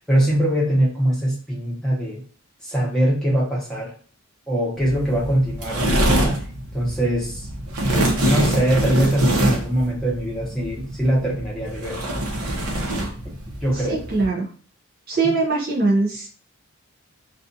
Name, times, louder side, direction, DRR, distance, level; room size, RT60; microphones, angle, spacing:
voice 1, 0.1-2.2 2.6-3.9 4.5-6.4 6.7-7.5 8.2-12.1 13.6-14.0, right 1 dB, 5° left, -6 dB, 0.8 m, -22 dB
sound 1, 4.8-14.3, right 1 dB, 90° right, 0.7 m, -24 dB
voice 2, 13.7-14.5 15.1-16.3, right 3 dB, 45° right, -1 dB, 0.4 m, -22 dB
2.4 x 2.3 x 2.6 m, 0.44 s
head